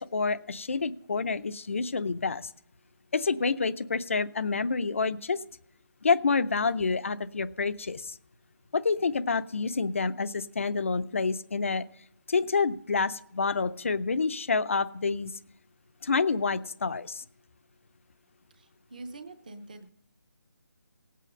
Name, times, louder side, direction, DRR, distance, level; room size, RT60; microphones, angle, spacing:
voice 1, 0.0-2.5 3.1-5.4 6.0-8.2 8.7-11.9 12.3-15.3 16.0-17.2, left 4 dB, 40° left, 14 dB, 0.5 m, -28 dB
voice 2, 18.5-19.9, right 2 dB, 25° right, 10 dB, 0.7 m, -45 dB
17.5 x 8.4 x 5.3 m, 0.72 s
figure-of-eight pair, 175°, 11 cm